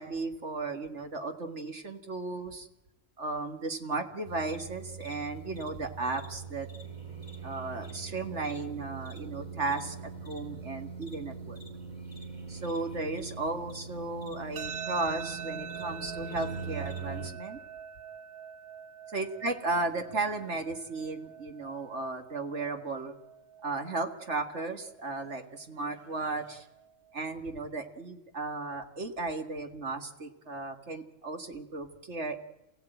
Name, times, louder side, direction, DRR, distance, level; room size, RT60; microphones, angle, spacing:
voice 1, 0.0-2.7 3.2-6.7 7.4-10.0 10.2-11.6 12.5-17.6 19.1-23.2 23.6-26.7 27.1-32.4, right 3 dB, 55° right, 6 dB, 2.0 m, -35 dB
sound 1, 4.2-17.3, right 5 dB, 30° right, 3.5 m, -42 dB
sound 2, 14.6-27.5, right 7 dB, 85° right, 1.7 m, -45 dB
28.5 x 16.5 x 9.1 m, 0.98 s
omnidirectional pair, 1.4 m